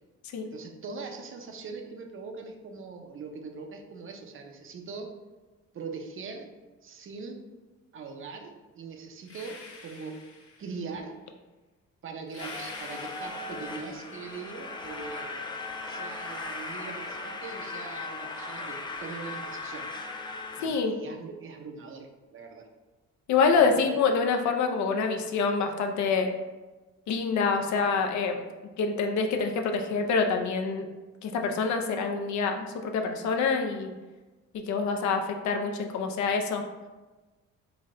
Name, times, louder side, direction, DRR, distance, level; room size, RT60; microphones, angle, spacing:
voice 1, 0.4-5.1 5.7-6.5 6.8-7.4 7.9-10.2 10.6-11.2 12.0-15.4 15.8-19.9 20.6-22.7 23.5-23.9, right 4 dB, 45° right, 4 dB, 0.6 m, -41 dB
sound 1, 9.2-10.9 12.3-14.3, left 3 dB, 50° left, 1.0 m, -47 dB
sound 2, 12.4-20.7, left 3 dB, 15° left, 0.4 m, -38 dB
voice 2, 20.6-21.0 23.3-26.3 27.1-28.4 28.8-30.9 31.2-33.9 34.5-36.6, left 5 dB, 70° left, 4 dB, 0.5 m, -26 dB
3.9 x 2.1 x 3.6 m, 1.2 s
cardioid pair, 90°, 30 cm